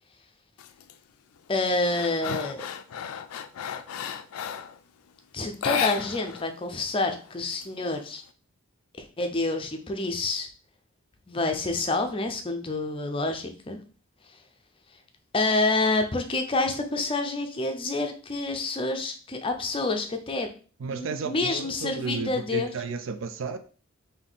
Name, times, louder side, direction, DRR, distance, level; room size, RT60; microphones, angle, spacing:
sound 1, 0.6-0.9 1.4-4.8 5.5-6.5 6.7-6.8 7.2-8.2, left 8 dB, 90° left, 0.4 m, -33 dB
voice 1, 1.5-2.6 5.3-8.2 9.0-10.5 11.3-13.8 15.3-20.5 20.9-22.7, left 2 dB, 25° left, 0.5 m, -28 dB
voice 2, 20.8-23.6, right 4 dB, 60° right, 0.4 m, -33 dB
3.6 x 2.7 x 3.9 m
head